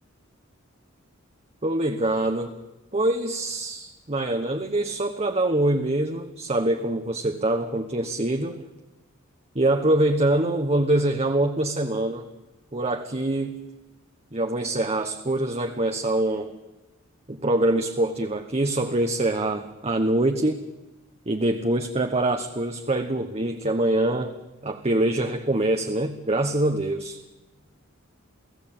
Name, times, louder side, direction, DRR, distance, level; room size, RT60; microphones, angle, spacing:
voice 1, 1.6-2.5 2.9-8.6 9.5-12.2 12.7-13.6 14.3-16.5 17.3-20.6 21.3-24.3 24.6-27.2, right 1 dB, 30° right, 5 dB, 1.2 m, -24 dB
29.5 x 17.5 x 8.8 m, 1.1 s
head